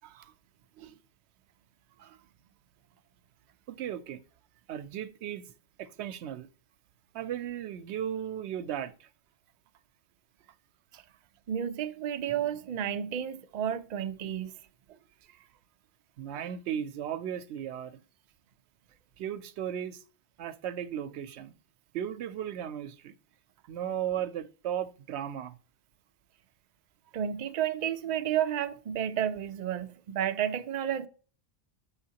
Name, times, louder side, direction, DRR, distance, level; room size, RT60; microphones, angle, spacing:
voice 1, 0.0-0.3 0.8-0.9 2.0-2.2 3.7-4.2 4.7-5.5 5.8-6.5 7.1-9.1 14.9-15.0 16.2-18.0 19.2-20.0 20.4-21.5 21.9-23.2 23.7-25.6, right 10 dB, 90° right, 0.8 m, -36 dB
voice 2, 11.5-14.5 27.1-31.1, right 10 dB, 55° right, 0.5 m, -31 dB
7.1 x 5.6 x 2.8 m
omnidirectional pair, 1.1 m